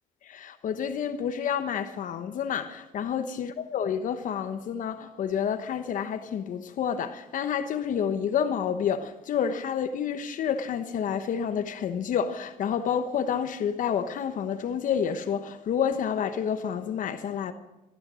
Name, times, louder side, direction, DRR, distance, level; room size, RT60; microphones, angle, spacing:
voice 1, 0.3-17.5, left 8 dB, 65° left, 1.1 m, -29 dB
15.0 x 13.0 x 6.3 m
cardioid pair, 100°, 14 cm